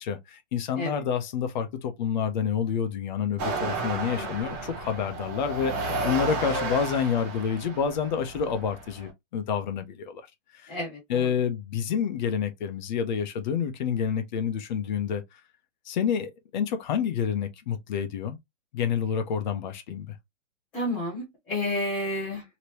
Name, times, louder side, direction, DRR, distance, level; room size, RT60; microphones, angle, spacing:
voice 1, 0.0-10.2 10.5-10.7 11.1-15.2 15.9-18.4 18.7-20.1, left 7 dB, 40° left, 0.7 m, -28 dB
sound 1, 3.4-9.1, right 3 dB, 20° right, 0.7 m, -33 dB
voice 2, 10.7-11.3 20.7-22.4, left 1 dB, 5° left, 0.4 m, -31 dB
3.3 x 2.9 x 2.8 m
hypercardioid pair, 155°, 37 cm